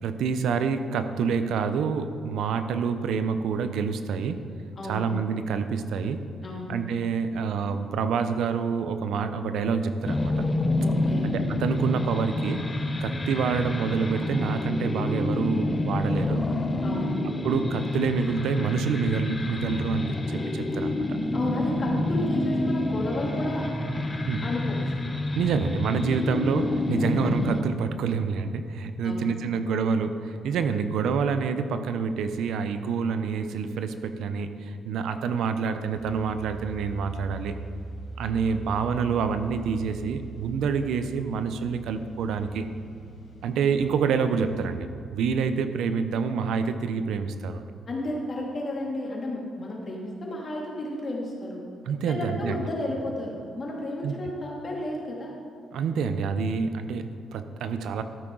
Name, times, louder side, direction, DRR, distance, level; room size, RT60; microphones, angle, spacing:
voice 1, 0.0-4.5 4.9-6.2 6.7-10.4 11.2-12.7 13.0-16.4 17.4-21.0 24.3-24.5 25.3-37.6 38.2-42.7 43.4-47.6 51.9-52.6 54.0-54.1 55.7-58.0, right 6 dB, 80° right, 9 dB, 0.6 m, -27 dB
voice 2, 4.8-5.1 6.4-6.7 10.8-11.3 16.8-17.2 21.3-23.7 24.4-24.9 29.0-29.3 47.9-51.6 52.1-55.3, left 1 dB, 40° left, -2 dB, 2.6 m, -32 dB
sound 1, 10.0-27.6, left 2 dB, 25° left, 0.8 m, -28 dB
sound 2, 35.8-44.7, right 4 dB, 70° left, 2.2 m, -42 dB
13.0 x 8.6 x 3.9 m, 2.2 s
cardioid pair, 90°, 0 cm